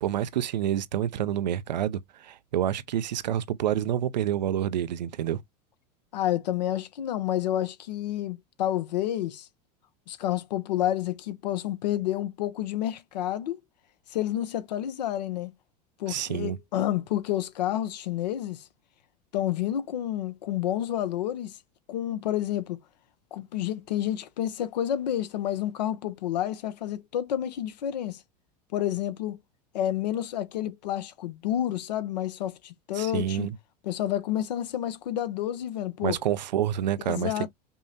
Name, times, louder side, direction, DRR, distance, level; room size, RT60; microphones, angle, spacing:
voice 1, 0.0-5.4 16.1-16.6 33.0-33.6 36.0-37.5, right 11 dB, 90° right, 0.5 m, -28 dB
voice 2, 6.1-9.5 10.1-13.6 14.1-15.5 16.0-18.7 19.3-21.6 21.9-22.8 23.3-28.2 28.7-29.4 29.7-33.5 33.8-36.2 37.0-37.5, left 12 dB, 80° left, 0.7 m, -29 dB
5.4 x 2.1 x 2.7 m
hypercardioid pair, 95°, 21 cm